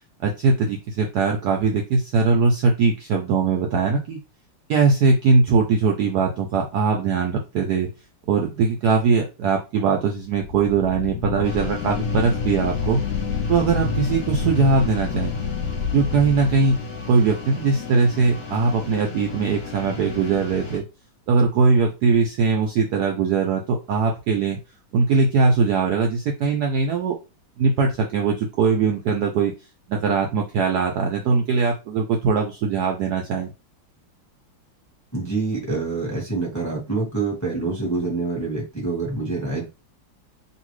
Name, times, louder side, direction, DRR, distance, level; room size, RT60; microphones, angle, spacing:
voice 1, 0.2-4.2 4.7-7.9 8.3-13.0 13.5-15.3 15.9-16.8 17.1-20.9 21.3-24.6 24.9-27.2 27.6-29.5 29.9-33.5, right 4 dB, 70° right, 2 dB, 0.9 m, -21 dB
sound 1, 10.2-17.3, left 6 dB, 75° left, 1.0 m, -29 dB
sound 2, 11.4-20.8, left 4 dB, 50° left, 1.0 m, -34 dB
voice 2, 35.1-39.6, right 3 dB, 10° left, -3 dB, 0.9 m, -26 dB
2.9 x 2.6 x 3.1 m, 0.28 s
omnidirectional pair, 2.1 m